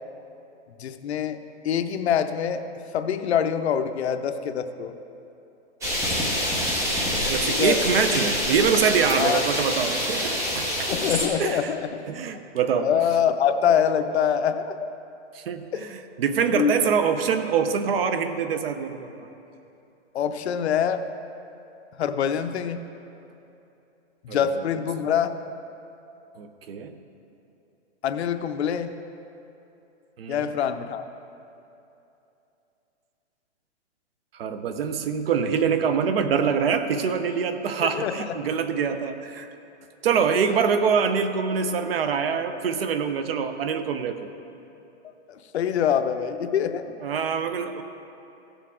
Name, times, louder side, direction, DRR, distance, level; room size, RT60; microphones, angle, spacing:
voice 1, 0.8-1.4 1.6-2.6 2.9-4.9 7.5-7.8 9.2-9.4 10.9-12.0 12.8-14.8 15.7-15.8 16.5-16.9 20.1-21.0 22.0-22.8 24.2-25.3 28.0-28.9 30.3-31.1 38.0-38.3 45.3-46.9, left 8 dB, 65° left, 8 dB, 0.7 m, -25 dB
sound 1, 5.8-11.3, left 1 dB, 10° right, 0.8 m, -26 dB
voice 2, 7.2-10.9 11.4-11.7 12.1-12.9 15.3-19.3 24.3-24.5 26.4-26.9 30.2-30.5 34.4-39.5 40.0-44.3 47.0-47.8, right 6 dB, 55° right, 9 dB, 0.8 m, -25 dB
15.5 x 7.0 x 3.7 m, 2.8 s
hypercardioid pair, 160°, 35 cm